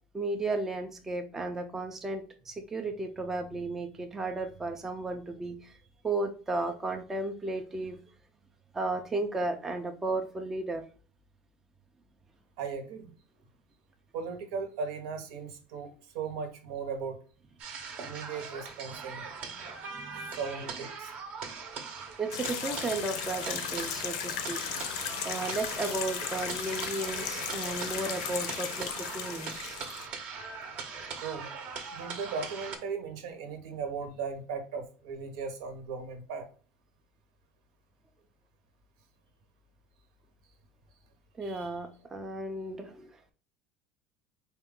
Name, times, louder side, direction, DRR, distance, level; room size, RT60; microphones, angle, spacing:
voice 1, 0.1-5.7 6.0-8.0 8.7-10.8 19.9-20.4 22.2-24.6 25.2-29.8 30.9-31.0 41.4-43.2, right 2 dB, 10° right, 5 dB, 0.4 m, -34 dB
voice 2, 12.6-13.1 14.1-17.2 18.0-19.3 20.3-21.1 27.6-27.7 31.2-31.5 31.9-36.5 41.4-41.7, right 5 dB, 80° right, 5 dB, 0.9 m, -37 dB
sound 1, 17.6-32.8, right 5 dB, 40° right, 0.7 m, -41 dB
sound 2, 22.3-30.1, left 8 dB, 85° left, 0.6 m, -36 dB
4.3 x 2.3 x 3.5 m, 0.40 s
cardioid pair, 160°, 3 cm